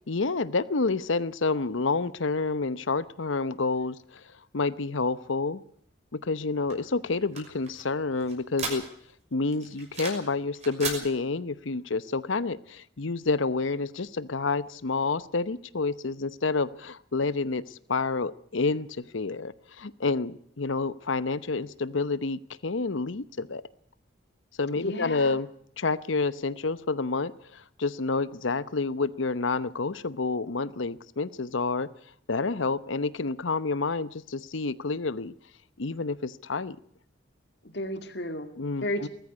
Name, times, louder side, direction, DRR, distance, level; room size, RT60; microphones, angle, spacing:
voice 1, 0.1-4.2 4.5-5.6 6.1-8.8 9.3-23.6 24.6-25.5 25.8-31.9 32.3-35.3 35.8-36.8 38.6-39.1, left 3 dB, 85° left, 0.9 m, -29 dB
sound 1, 6.7-9.2 9.5-10.3 10.6-11.0, right 4 dB, 35° right, 6.0 m, -36 dB
voice 2, 24.8-25.4 37.6-38.5 38.8-39.1, left 1 dB, 60° left, 2.2 m, -32 dB
19.5 x 14.5 x 9.5 m
head